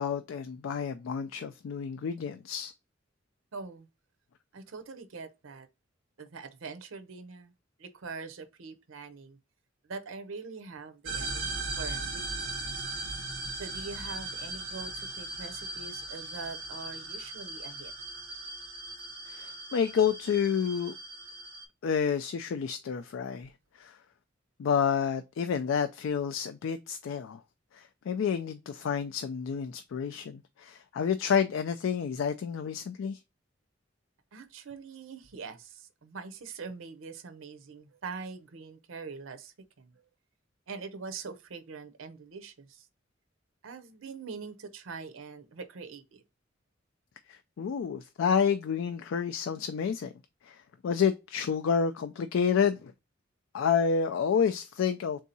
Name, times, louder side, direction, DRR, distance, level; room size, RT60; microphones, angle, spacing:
voice 1, 0.0-2.7 19.3-20.9 21.8-23.5 23.8-24.0 24.6-27.4 27.7-33.2 47.3-50.1 50.4-52.9 53.5-55.2, left 7 dB, 75° left, 0.3 m, -29 dB
voice 2, 3.5-3.9 4.5-5.7 6.2-7.5 7.8-9.4 9.8-12.6 13.6-17.9 34.3-40.0 40.7-42.9 43.6-46.2, right 4 dB, 90° right, 0.6 m, -43 dB
sound 1, 11.0-21.6, right 2 dB, 70° right, 1.1 m, -38 dB
3.6 x 2.7 x 4.0 m
head